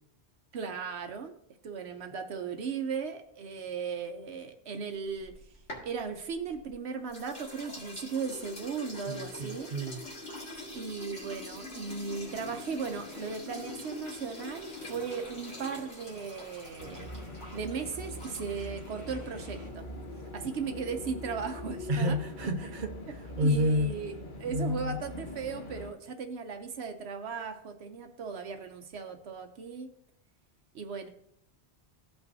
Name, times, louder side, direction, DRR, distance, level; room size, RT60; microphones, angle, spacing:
voice 1, 0.5-1.3 1.6-5.3 5.8-9.7 10.7-17.1 17.5-19.9 20.3-22.2 23.4-29.9 30.7-31.1, right 5 dB, 75° right, 6 dB, 1.0 m, -37 dB
sound 1, 5.1-6.7 7.1-18.9, left 2 dB, 90° left, 2.7 m, -44 dB
voice 2, 9.1-10.0 21.9-23.9 24.4-25.0, equal, 50° right, 4 dB, 1.0 m, -30 dB
sound 2, 11.8-19.7, left 1 dB, 30° left, 1.8 m, -53 dB
sound 3, 16.8-25.9, left 1 dB, 50° left, 1.3 m, -42 dB
16.0 x 5.7 x 2.7 m, 0.72 s
omnidirectional pair, 1.1 m